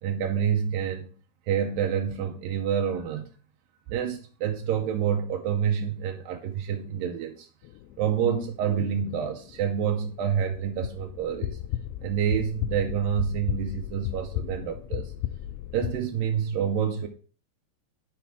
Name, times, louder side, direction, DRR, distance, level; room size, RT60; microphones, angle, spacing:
voice 1, 0.0-1.1 1.5-3.3 3.9-7.5 8.0-11.6 12.0-15.1 15.7-17.1, right 8 dB, 85° right, 2.0 m, -28 dB
sound 1, 7.6-15.9, left 12 dB, 85° left, 2.2 m, -35 dB
12.5 x 4.3 x 3.5 m
omnidirectional pair, 4.9 m